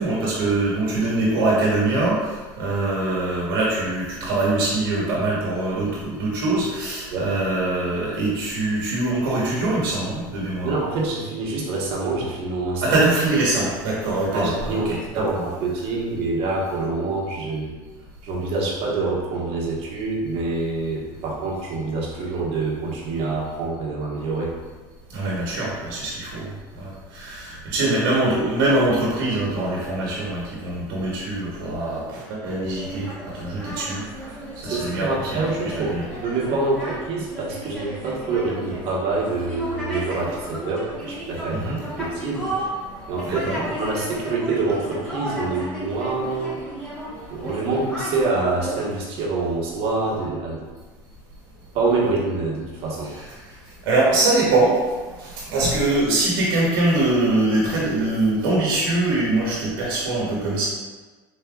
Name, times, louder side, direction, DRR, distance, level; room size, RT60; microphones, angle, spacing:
voice 1, 0.0-10.7 12.8-15.4 25.1-26.5 26.8-34.0 34.5-35.4 35.9-36.0 41.5-41.8 43.2-43.6 53.0-53.5 53.8-54.8 55.2-60.7, right 2 dB, 80° right, -5 dB, 1.1 m, -23 dB
voice 2, 10.6-13.0 14.3-14.9 15.1-17.7 18.2-24.5 27.5-27.6 34.6-42.5 43.1-46.6 47.3-50.7 51.7-53.1, right 3 dB, 55° right, -4 dB, 1.2 m, -26 dB
sound 1, 32.8-48.9, right 1 dB, 10° left, 1.2 m, -34 dB
4.1 x 3.3 x 2.3 m, 1.3 s
supercardioid pair, 110°, 11 cm